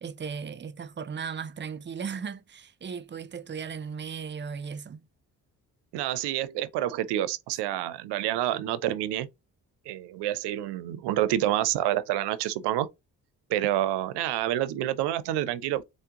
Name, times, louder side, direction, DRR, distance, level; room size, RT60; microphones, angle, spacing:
voice 1, 0.0-5.1, right 6 dB, 30° right, 0.4 m, -36 dB
voice 2, 5.9-9.3 9.9-12.9 13.5-15.8, right 13 dB, 85° right, 0.5 m, -28 dB
3.6 x 2.1 x 2.8 m
supercardioid pair, 55°, 40 cm